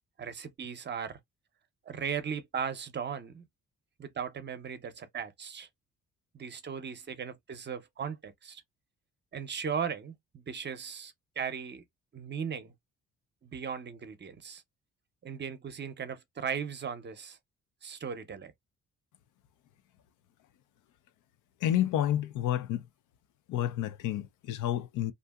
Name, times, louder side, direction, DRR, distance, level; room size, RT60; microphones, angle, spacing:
voice 1, 0.2-1.2 1.9-3.4 4.0-5.7 6.3-8.6 9.3-11.8 12.1-12.7 13.4-14.6 15.2-17.4 17.8-18.5, right 7 dB, 35° right, 0.6 m, -37 dB
voice 2, 21.6-22.8 23.5-25.1, left 11 dB, 80° left, 0.5 m, -29 dB
2.7 x 2.5 x 2.3 m
cardioid pair, 90°, 30 cm